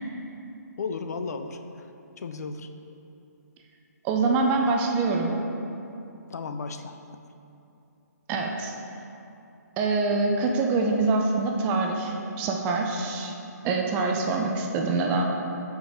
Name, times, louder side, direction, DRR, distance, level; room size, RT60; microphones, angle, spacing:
voice 1, 0.8-1.9 2.2-2.7 6.3-7.2, left 4 dB, 65° left, 7 dB, 0.4 m, -34 dB
voice 2, 4.0-5.4 8.3-8.7 9.8-13.3 13.6-15.2, right 3 dB, 15° right, 2 dB, 0.4 m, -25 dB
5.1 x 4.9 x 5.1 m, 2.7 s
hypercardioid pair, 155°, 10 cm